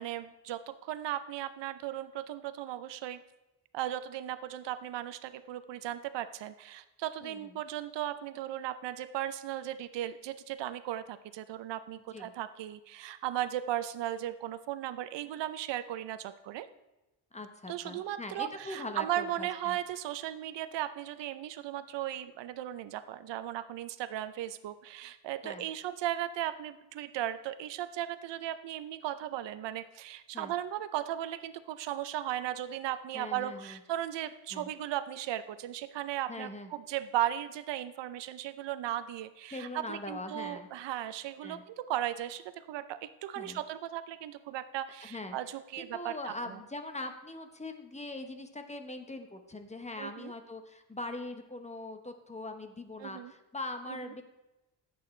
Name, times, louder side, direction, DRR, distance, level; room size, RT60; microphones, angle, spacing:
voice 1, 0.0-3.2 3.7-16.7 17.7-46.6 50.0-50.3 53.0-53.3 53.9-54.1, right 12 dB, 75° right, 13 dB, 0.7 m, -36 dB
voice 2, 17.3-19.8 25.4-25.7 30.3-30.5 33.1-33.8 34.5-34.7 36.3-36.7 39.5-40.7 41.4-41.6 43.4-43.6 45.1-45.4 45.8-54.2, left 2 dB, 15° left, 6 dB, 1.1 m, -41 dB
14.5 x 8.6 x 3.2 m, 0.99 s
cardioid pair, 110°, 44 cm